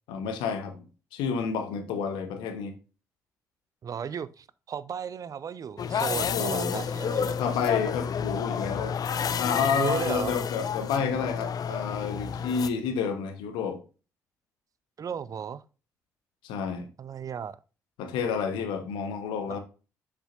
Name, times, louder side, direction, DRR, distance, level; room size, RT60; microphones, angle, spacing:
voice 1, 0.1-0.8 1.1-2.7 6.2-6.8 7.2-9.0 9.4-13.8 16.4-16.9 18.0-19.6, left 6 dB, 70° left, 1.1 m, -30 dB
voice 2, 3.8-7.4 9.7-10.4 15.0-15.6 17.0-17.6 19.5-19.6, right 7 dB, 45° right, 0.5 m, -34 dB
sound 1, 5.8-12.7, left 7 dB, 50° left, 0.6 m, -30 dB
7.4 x 6.8 x 2.5 m
hypercardioid pair, 40°, 8 cm